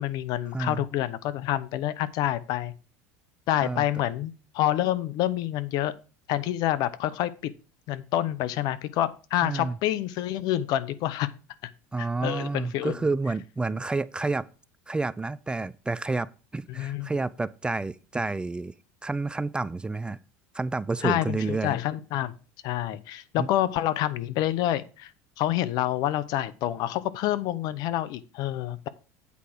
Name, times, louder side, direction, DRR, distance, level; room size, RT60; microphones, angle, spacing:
voice 1, 0.0-2.7 3.5-5.9 6.3-7.5 7.9-11.3 12.0-13.0 16.7-17.1 21.0-22.3 22.6-25.1 25.4-28.9, left 13 dB, 60° left, 0.8 m, -27 dB
voice 2, 0.5-0.8 3.6-3.8 9.4-9.8 11.9-14.5 14.9-18.7 19.0-20.2 20.5-21.8 23.4-23.5, right 3 dB, 10° right, 0.4 m, -29 dB
8.5 x 4.8 x 5.9 m
supercardioid pair, 100°, 8 cm